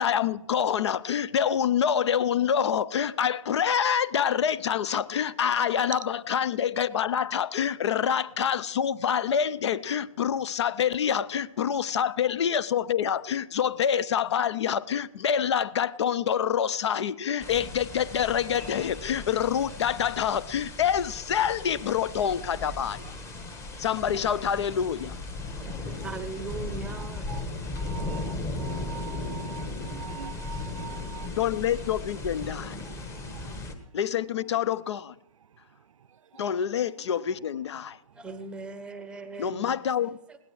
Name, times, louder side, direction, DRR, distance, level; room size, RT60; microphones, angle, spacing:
voice 1, 0.0-23.1 23.8-25.2 31.4-32.8 33.9-35.1 36.4-38.0 39.4-40.1, left 8 dB, 55° left, 0.5 m, -26 dB
sound 1, 17.4-33.8, left 2 dB, 15° left, 1.2 m, -37 dB
voice 2, 25.6-27.3 38.1-39.8 40.3-40.4, right 3 dB, 5° right, 0.8 m, -39 dB
voice 3, 27.0-27.4 27.8-31.4 32.6-33.6 36.3-36.4 37.0-37.2, right 8 dB, 65° right, 0.6 m, -44 dB
21.0 x 17.0 x 3.2 m
figure-of-eight pair, 130°, 18 cm